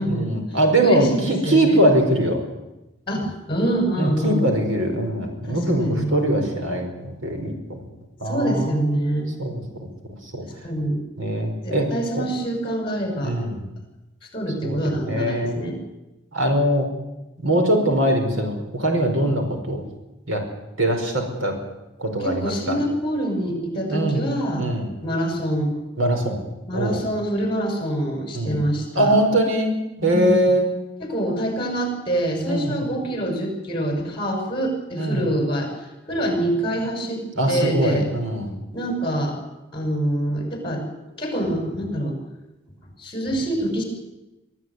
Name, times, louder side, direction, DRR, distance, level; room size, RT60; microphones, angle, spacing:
voice 1, 0.0-2.4 4.0-7.8 8.2-8.8 9.4-9.9 10.2-10.4 11.2-11.9 13.2-13.7 14.6-15.6 16.3-16.9 17.4-19.9 20.3-20.4 20.8-21.6 22.0-22.8 23.9-24.3 24.6-24.9 26.0-26.4 26.7-27.0 28.3-28.6 28.9-29.7 30.0-30.7 32.5-32.8 34.9-35.3 37.4-38.5, right 1 dB, 90° right, 4 dB, 5.3 m, -22 dB
voice 2, 0.8-1.8 3.1-4.5 5.5-6.1 8.2-9.3 10.6-11.0 11.6-13.4 14.3-15.8 19.2-19.4 22.2-24.7 25.0-25.8 26.7-29.1 30.0-30.3 31.0-35.7 36.1-38.1 38.7-39.4 39.7-40.8 41.2-42.2 43.0-43.8, right 1 dB, 25° left, 3 dB, 6.6 m, -25 dB
23.5 x 15.0 x 9.7 m, 1.0 s
head